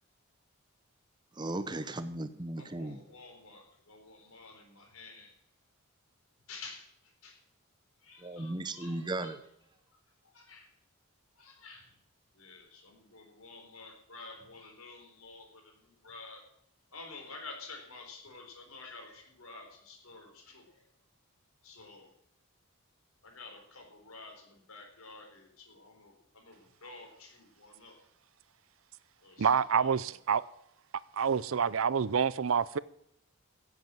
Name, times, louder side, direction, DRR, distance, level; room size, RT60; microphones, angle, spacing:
voice 1, 1.4-3.0 8.2-9.4, right 2 dB, 20° right, 0.8 m, -36 dB
voice 2, 2.5-5.3 6.5-7.4 8.0-9.4 9.9-10.7 11.4-11.9 12.3-16.4 16.9-20.9 21.6-22.1 23.2-28.0 29.2-30.2, left 3 dB, 75° left, 4.0 m, -50 dB
voice 3, 29.4-30.4 31.1-32.8, right 6 dB, 65° right, 0.5 m, -27 dB
16.0 x 8.1 x 7.5 m
head